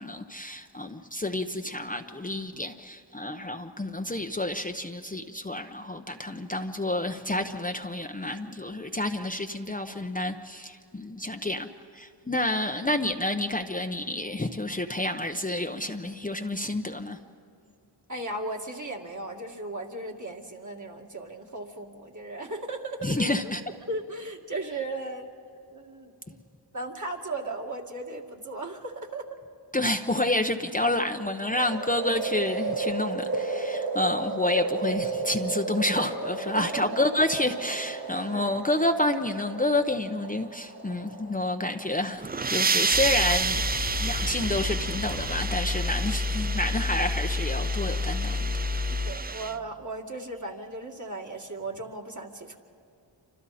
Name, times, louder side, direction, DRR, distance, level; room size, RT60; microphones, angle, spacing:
voice 1, 0.0-11.7 11.9-17.2 23.0-23.6 29.7-43.6 44.0-48.5, left 1 dB, 20° left, 0.9 m, -29 dB
voice 2, 18.1-23.5 23.9-25.3 25.7-26.1 26.7-29.3 36.6-37.1 38.3-38.9 41.2-41.4 48.9-52.6, right 2 dB, 40° right, 2.3 m, -36 dB
sound 1, 31.5-41.8 42.2-42.3, right 3 dB, 85° right, 6.0 m, -33 dB
sound 2, 42.1-49.5, right 4 dB, 20° right, 0.4 m, -30 dB
sound 3, 42.9-49.1, left 4 dB, 85° left, 3.0 m, -30 dB
28.0 x 25.5 x 4.3 m
cardioid pair, 50°, 44 cm